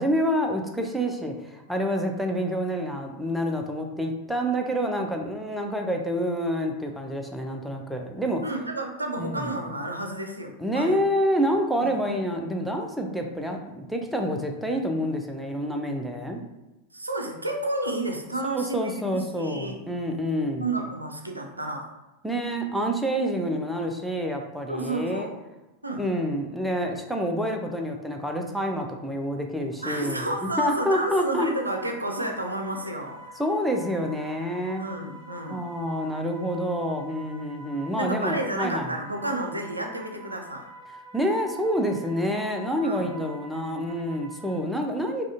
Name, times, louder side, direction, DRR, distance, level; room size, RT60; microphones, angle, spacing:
voice 1, 0.0-8.4 9.2-9.5 10.6-16.4 18.5-20.7 22.2-25.3 26.0-31.5 33.4-34.8 35.5-38.9 41.1-45.3, equal, ahead, 3 dB, 0.5 m, -27 dB
voice 2, 8.4-11.0 11.8-12.0 16.9-19.9 20.6-21.9 24.7-25.4 25.8-26.0 29.8-33.4 34.8-35.6 38.0-40.7 42.8-43.1, right 2 dB, 85° right, 3 dB, 0.4 m, -31 dB
sound 1, 29.8-44.6, right 2 dB, 50° left, 0.9 m, -47 dB
4.8 x 2.3 x 2.6 m, 1.0 s
figure-of-eight pair, 90°, 0 cm